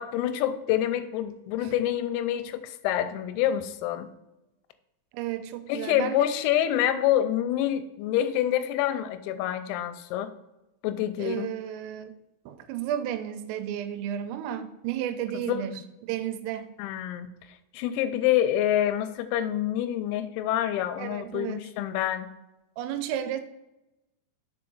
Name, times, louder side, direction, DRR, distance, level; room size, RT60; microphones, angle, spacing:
voice 1, 0.0-4.1 5.7-10.3 10.8-11.5 15.3-15.8 16.8-17.3 17.7-22.3, left 11 dB, 90° left, 11 dB, 3.3 m, -27 dB
voice 2, 5.1-6.2 11.2-12.1 12.5-15.8 16.1-16.7 21.0-21.6 22.8-23.4, right 11 dB, 85° right, 9 dB, 3.2 m, -32 dB
6.7 x 4.6 x 3.8 m, 0.95 s
omnidirectional pair, 5.9 m